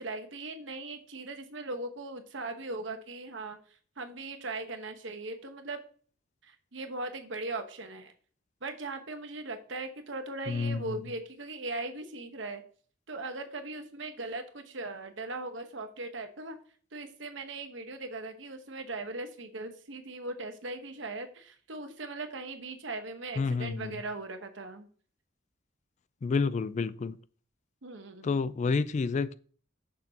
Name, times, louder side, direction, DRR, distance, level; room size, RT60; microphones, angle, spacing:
voice 1, 0.0-3.6 4.0-5.8 6.4-8.1 8.6-12.6 13.1-16.6 16.9-24.9 27.8-28.4, right 2 dB, 70° right, 1.1 m, -39 dB
voice 2, 10.5-11.0 23.4-24.0 26.2-27.2 28.2-29.3, left 4 dB, 35° left, 0.3 m, -29 dB
6.6 x 6.3 x 2.8 m
head